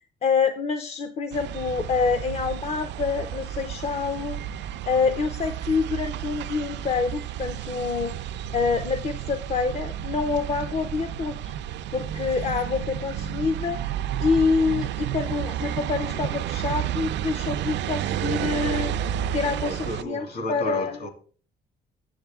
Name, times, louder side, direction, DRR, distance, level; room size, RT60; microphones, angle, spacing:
voice 1, 0.2-8.3 8.5-11.5 11.9-13.8 14.2-21.0, left 5 dB, 35° left, 0.5 m, -27 dB
sound 1, 1.3-20.0, right 10 dB, 80° right, 0.4 m, -31 dB
voice 2, 19.6-21.1, left 1 dB, 55° left, 1.7 m, -32 dB
8.0 x 7.4 x 3.5 m
cardioid pair, 180°, 18 cm